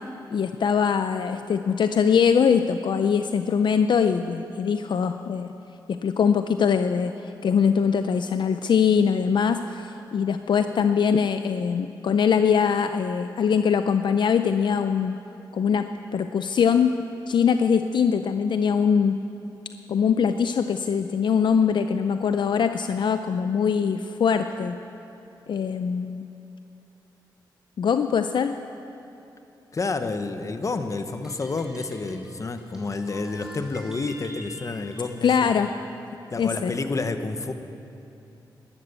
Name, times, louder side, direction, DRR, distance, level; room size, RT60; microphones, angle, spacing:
voice 1, 0.3-5.5 5.9-15.2 15.5-15.9 16.1-16.9 17.3-19.2 19.9-24.8 25.5-26.2 27.8-28.6 35.2-35.7 36.4-36.7, left 6 dB, 70° left, 8 dB, 0.5 m, -22 dB
voice 2, 29.7-35.5 36.3-37.5, left 3 dB, 40° left, 8 dB, 1.0 m, -29 dB
sound 1, 31.1-35.8, equal, 5° right, 3.6 m, -45 dB
13.5 x 12.5 x 8.2 m, 2.9 s
cardioid pair, 90°, 8 cm